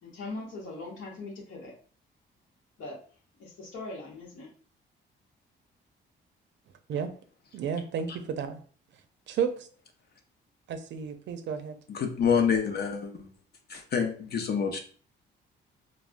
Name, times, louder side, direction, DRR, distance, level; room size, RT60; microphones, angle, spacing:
voice 1, 0.0-1.7 2.8-3.0 3.4-4.5, left 2 dB, 75° left, 1.0 m, -40 dB
voice 2, 7.5-8.6 9.3-9.7 10.7-11.8, right 7 dB, 65° right, 0.5 m, -32 dB
voice 3, 11.9-13.3 13.7-14.8, left 6 dB, 55° left, 0.6 m, -27 dB
3.4 x 2.1 x 2.5 m
cardioid pair, 90°, 20 cm